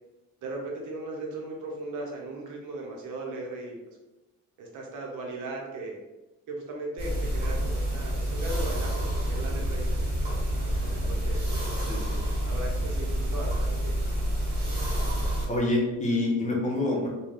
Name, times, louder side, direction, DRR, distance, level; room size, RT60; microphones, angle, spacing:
voice 1, 0.4-4.0 4.6-6.0 6.5-11.9 12.5-14.0, right 2 dB, 80° right, -1 dB, 0.8 m, -38 dB
sound 1, 7.0-15.5, equal, 30° right, 1.4 m, -28 dB
voice 2, 11.9-12.2 15.5-17.1, left 2 dB, 25° left, -2 dB, 0.8 m, -27 dB
2.4 x 2.3 x 3.4 m, 1.1 s
cardioid pair, 90°, 30 cm